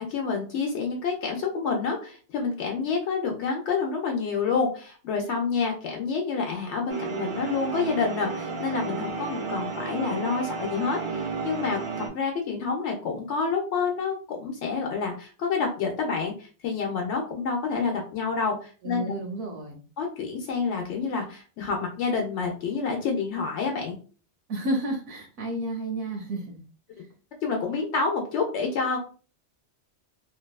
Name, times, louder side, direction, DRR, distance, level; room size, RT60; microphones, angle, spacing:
voice 1, 0.1-11.8 12.1-19.2 20.0-23.9 27.4-29.0, left 5 dB, 75° left, 2 dB, 0.9 m, -28 dB
sound 1, 6.9-12.1, right 5 dB, 50° right, 0.3 m, -32 dB
voice 2, 18.8-19.8 24.5-26.6 27.0-27.1, right 1 dB, 75° right, 0 dB, 0.9 m, -31 dB
2.6 x 2.2 x 2.2 m, 0.37 s
omnidirectional pair, 1.2 m